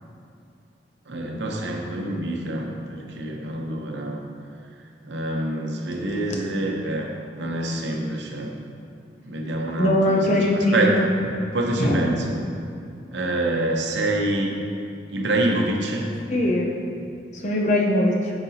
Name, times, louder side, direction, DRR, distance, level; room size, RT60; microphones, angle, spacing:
voice 1, 1.1-4.2 5.0-8.5 9.2-11.1 11.5-12.4 13.1-14.5 15.1-16.1, right 1 dB, 70° right, 0 dB, 0.9 m, -26 dB
voice 2, 9.8-11.1 11.8-12.0 16.3-16.7 17.4-18.3, left 1 dB, 40° left, -1 dB, 0.8 m, -21 dB
9.4 x 6.1 x 2.8 m, 2.5 s
head